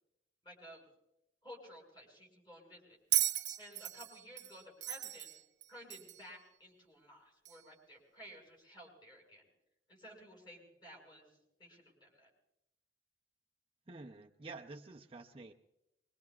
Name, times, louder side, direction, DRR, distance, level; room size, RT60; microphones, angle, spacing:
voice 1, 0.4-0.8 1.4-3.0 3.6-5.3 5.7-9.4 9.9-12.3, equal, 25° left, -1 dB, 6.5 m, -55 dB
Bell, 3.1-6.3 7.5-7.6, right 14 dB, 80° right, 0.6 m, -36 dB
voice 2, 13.9-15.5, right 3 dB, 30° right, 2 dB, 0.6 m, -49 dB
25.5 x 22.5 x 2.4 m, 0.88 s
head